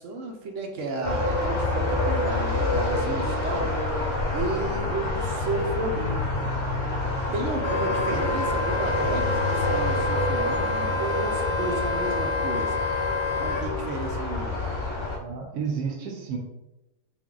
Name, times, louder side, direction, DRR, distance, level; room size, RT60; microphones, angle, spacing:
voice 1, 0.0-3.8 4.3-6.5 7.3-13.0 13.4-14.7, right 2 dB, 65° right, 2 dB, 0.9 m, -33 dB
sound 1, 1.0-15.2, left 2 dB, 35° left, 0.4 m, -27 dB
Wind instrument woodwind instrument, 7.6-13.7, left 3 dB, 65° left, 0.8 m, -28 dB
voice 2, 15.2-16.4, right 6 dB, 80° right, 1 dB, 1.2 m, -31 dB
3.6 x 2.6 x 3.7 m, 0.96 s
omnidirectional pair, 1.6 m